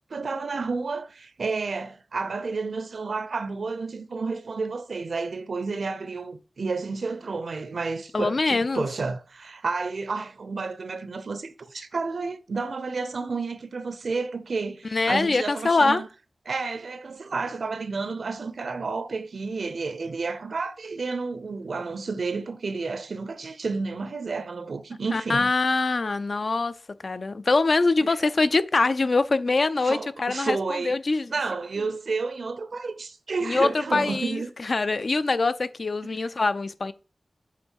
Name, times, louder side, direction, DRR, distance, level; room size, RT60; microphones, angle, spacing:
voice 1, 0.1-16.1 16.5-25.5 28.0-28.3 29.8-30.9 31.3-34.5 36.0-36.2, right 4 dB, 75° right, 0.7 m, -31 dB
voice 2, 8.1-8.9 14.8-16.0 25.1-26.7 27.0-31.3 33.4-36.9, left 3 dB, 55° left, 0.4 m, -24 dB
8.3 x 3.6 x 4.5 m
wide cardioid pair, 90°, 0 cm